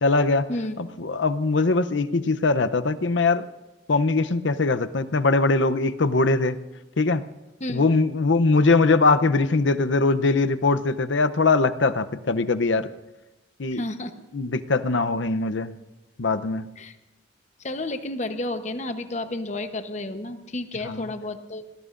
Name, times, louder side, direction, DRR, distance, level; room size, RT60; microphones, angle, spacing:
voice 1, 0.0-0.5 0.8-3.4 3.9-6.6 7.0-7.2 7.7-12.9 13.6-13.8 14.3-15.7 16.2-16.6 20.9-21.0, left 3 dB, 90° left, 11 dB, 0.7 m, -21 dB
voice 2, 13.7-14.1 16.8-17.0 17.6-21.7, left 2 dB, 40° left, 8 dB, 1.0 m, -31 dB
26.5 x 19.5 x 2.6 m, 0.99 s
head